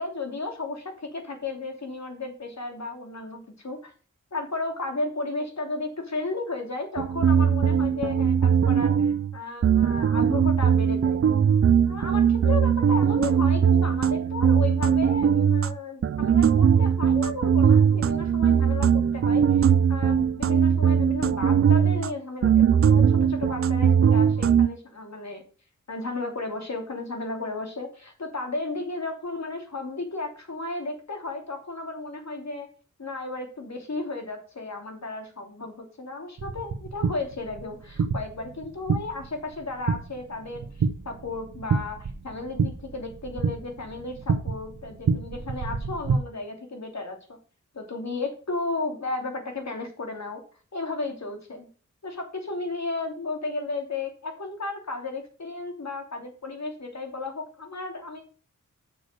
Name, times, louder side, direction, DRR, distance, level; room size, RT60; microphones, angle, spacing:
voice 1, 0.0-3.9 4.3-11.2 11.9-25.4 25.9-32.7 33.0-47.4 47.7-50.4 50.7-51.7 52.0-58.2, left 3 dB, 60° left, 4 dB, 2.8 m, -34 dB
sound 1, 7.0-9.4 9.6-15.8 16.0-22.1 22.4-24.7, right 7 dB, 45° right, 0.5 m, -20 dB
sound 2, 36.4-46.2, right 5 dB, 80° right, 0.9 m, -29 dB
6.6 x 6.2 x 6.5 m, 0.39 s
cardioid pair, 50°, 31 cm